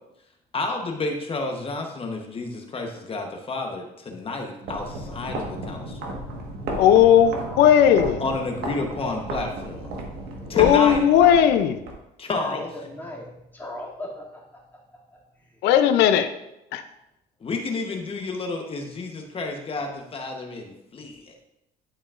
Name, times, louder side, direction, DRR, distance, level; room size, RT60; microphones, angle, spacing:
voice 1, 0.5-6.1 8.2-9.9 10.5-11.0 12.2-12.7 17.4-21.4, left 3 dB, 35° left, 3 dB, 1.0 m, -30 dB
sound 1, 4.6-12.0, right 2 dB, 75° right, 1.4 m, -34 dB
voice 2, 6.8-8.2 10.5-11.8 15.6-16.3 16.7-16.8, left 9 dB, 80° left, 8 dB, 0.5 m, -16 dB
voice 3, 7.4-8.0 10.3-11.0 12.3-14.4, left 1 dB, 10° left, -5 dB, 2.4 m, -39 dB
11.0 x 5.0 x 2.5 m, 0.86 s
cardioid pair, 110°, 17 cm